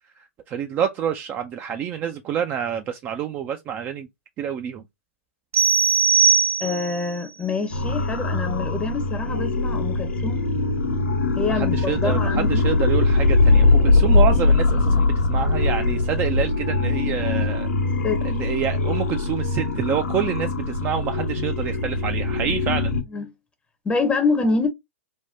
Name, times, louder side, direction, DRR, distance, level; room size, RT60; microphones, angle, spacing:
voice 1, 0.5-4.1 4.4-4.8 11.5-17.7 18.2-22.9, right 9 dB, 25° right, 0.4 m, -27 dB
sound 1, 5.5-7.1, right 6 dB, 70° right, 0.7 m, -19 dB
voice 2, 6.6-10.4 11.4-12.6 14.9-15.0 18.0-18.3 23.1-23.3 23.8-24.7, left 4 dB, 15° left, 0.7 m, -26 dB
sound 2, 7.7-23.0, left 3 dB, 85° left, 1.0 m, -21 dB
3.4 x 2.2 x 2.6 m
hypercardioid pair, 120°, 7 cm